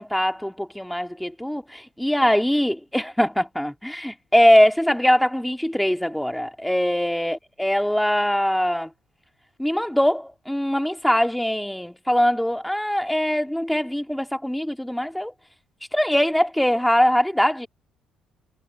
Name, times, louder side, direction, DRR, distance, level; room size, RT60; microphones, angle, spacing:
voice 1, 0.0-8.9 9.6-15.3 15.9-17.7, equal, 5° left, 2.3 m, -22 dB
cardioid pair, 115°, 0 cm